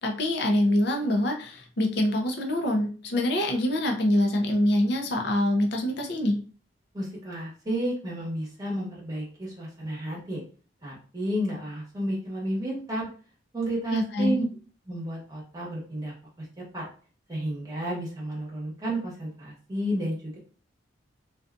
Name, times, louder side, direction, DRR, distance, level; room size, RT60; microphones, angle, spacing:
voice 1, 0.0-6.4 13.9-14.4, left 1 dB, 55° left, 2 dB, 0.5 m, -25 dB
voice 2, 6.9-10.4 10.8-13.1 13.5-14.4 14.9-16.5 16.7-16.9 17.3-20.4, right 1 dB, 20° right, -4 dB, 1.0 m, -32 dB
2.5 x 2.3 x 2.4 m, 0.39 s
head